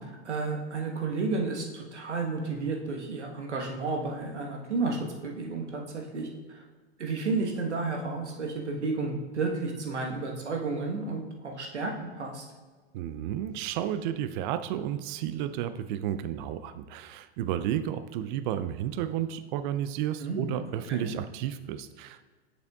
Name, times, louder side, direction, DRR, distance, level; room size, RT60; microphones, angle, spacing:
voice 1, 0.2-6.6 7.0-12.4 20.2-21.1, right 3 dB, 90° right, 1 dB, 1.3 m, -32 dB
voice 2, 12.9-22.2, right 11 dB, 45° right, 11 dB, 0.5 m, -32 dB
8.0 x 6.6 x 2.3 m, 1.4 s
hypercardioid pair, 105°, 34 cm